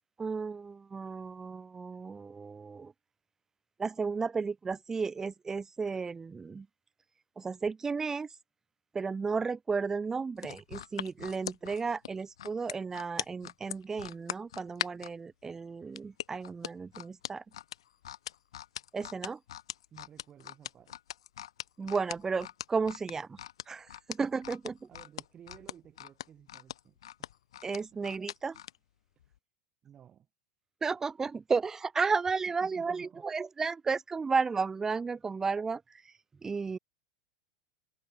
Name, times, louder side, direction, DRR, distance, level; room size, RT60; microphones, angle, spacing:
voice 1, 0.2-2.9 3.8-6.7 7.4-8.3 8.9-17.4 18.9-19.4 21.8-23.4 23.7-24.9 27.6-28.6 30.8-35.8 36.4-36.8, right 5 dB, 15° right, 0.6 m, -33 dB
sound 1, 10.4-15.1 16.0-28.8 29.2-29.4, left 11 dB, 80° left, 1.8 m, -41 dB
voice 2, 19.9-20.9 24.9-27.0 27.6-28.0 29.8-30.3 32.6-33.2, right 9 dB, 35° right, 3.3 m, -55 dB
hypercardioid pair, 100°, 3 cm